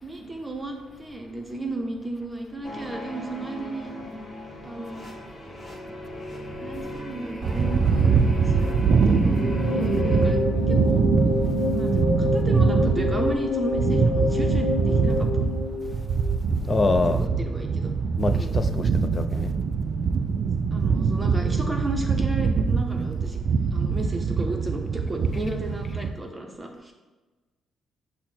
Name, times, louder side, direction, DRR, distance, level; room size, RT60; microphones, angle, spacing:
voice 1, 0.0-3.9 4.6-5.1 6.6-8.1 8.5-8.8 9.1-9.4 9.7-10.4 10.7-11.0 11.7-15.2 17.1-17.9 18.3-18.5 20.7-23.4 23.7-26.9, right 2 dB, 20° right, 0.6 m, -34 dB
sound 1, 2.6-10.3, left 1 dB, 15° left, 1.0 m, -37 dB
sound 2, 7.4-26.1, right 5 dB, 60° right, 0.3 m, -23 dB
sound 3, 9.3-16.5, left 3 dB, 80° left, 0.7 m, -28 dB
voice 2, 16.7-17.3 18.2-19.5, left 3 dB, 30° left, 0.3 m, -25 dB
5.7 x 2.1 x 4.3 m
cardioid pair, 100°, 0 cm